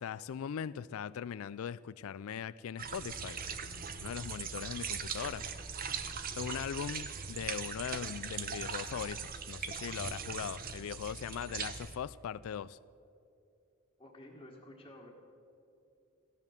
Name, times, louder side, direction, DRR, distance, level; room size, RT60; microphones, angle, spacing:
voice 1, 0.0-5.5 6.4-12.8, left 8 dB, 75° left, 0.3 m, -40 dB
sound 1, 2.8-12.0, right 6 dB, 45° right, 0.8 m, -40 dB
voice 2, 14.0-15.1, left 1 dB, 20° left, 1.6 m, -52 dB
15.0 x 10.5 x 7.1 m
head